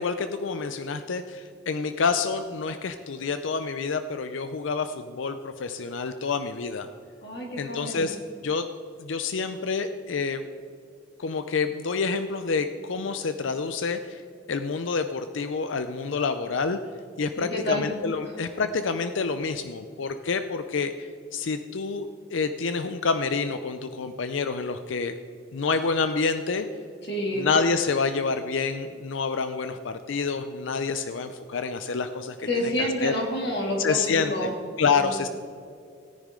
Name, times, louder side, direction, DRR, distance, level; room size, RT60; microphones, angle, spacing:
voice 1, 0.0-6.9 7.6-8.2 8.4-8.7 9.0-10.5 11.2-14.2 14.5-16.8 17.2-25.1 25.5-26.7 27.4-33.1 33.8-34.5 34.8-35.3, left 4 dB, 75° left, 9 dB, 0.5 m, -28 dB
voice 2, 7.2-8.1 17.4-17.9 18.2-18.3 27.0-27.5 32.4-34.6 34.9-35.1, equal, 55° left, -1 dB, 2.7 m, -29 dB
17.5 x 10.0 x 3.8 m, 2.6 s
head